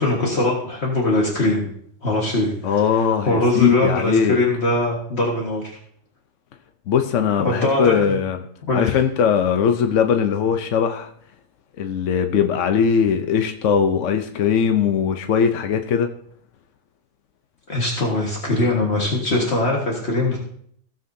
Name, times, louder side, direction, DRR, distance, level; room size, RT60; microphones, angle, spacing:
voice 1, 0.0-1.7 2.0-2.8 3.2-5.8 7.4-8.2 8.7-9.0 17.7-20.4, left 2 dB, 55° left, -2 dB, 1.9 m, -21 dB
voice 2, 2.6-4.4 6.9-8.4 8.7-11.1 11.8-16.1, left 7 dB, 70° left, 6 dB, 1.0 m, -20 dB
16.0 x 7.6 x 2.7 m, 0.64 s
omnidirectional pair, 1.4 m